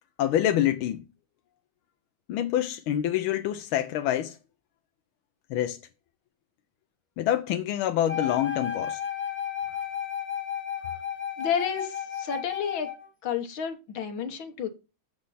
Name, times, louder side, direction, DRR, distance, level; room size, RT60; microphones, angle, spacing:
voice 1, 0.2-1.0 2.3-4.4 5.5-5.8 7.2-9.0, left 11 dB, 85° left, 1.5 m, -26 dB
Wind instrument woodwind instrument, 8.1-13.1, left 9 dB, 10° left, 0.8 m, -33 dB
voice 2, 11.4-12.9 13.2-14.7, left 7 dB, 70° left, 2.0 m, -31 dB
7.5 x 6.0 x 4.1 m
omnidirectional pair, 2.2 m